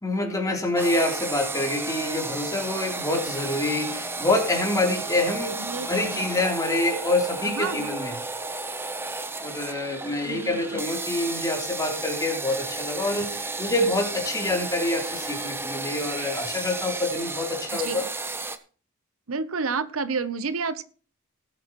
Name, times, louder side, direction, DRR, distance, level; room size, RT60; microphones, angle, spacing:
voice 1, 0.0-5.6 5.9-8.2 9.4-18.1, left 2 dB, 15° left, 0 dB, 3.6 m, -26 dB
sound 1, 0.8-18.6, right 3 dB, 10° right, 0.9 m, -33 dB
voice 2, 5.6-6.3 7.4-7.9 10.2-10.8 17.7-18.1 19.3-20.8, right 4 dB, 85° right, 14 dB, 0.9 m, -30 dB
19.5 x 8.7 x 3.1 m, 0.40 s
head